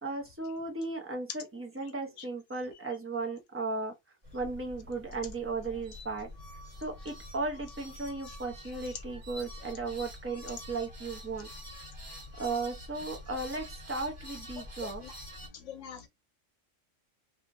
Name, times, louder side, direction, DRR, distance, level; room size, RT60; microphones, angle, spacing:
voice 1, 0.0-3.9 4.3-6.3 6.8-11.5 12.4-15.0, right 3 dB, 20° right, 0.4 m, -36 dB
sound 1, 4.2-15.5, left 1 dB, 45° right, 1.6 m, -46 dB
voice 2, 15.5-16.1, left 8 dB, 75° left, 1.0 m, -44 dB
2.8 x 2.5 x 2.5 m
omnidirectional pair, 1.3 m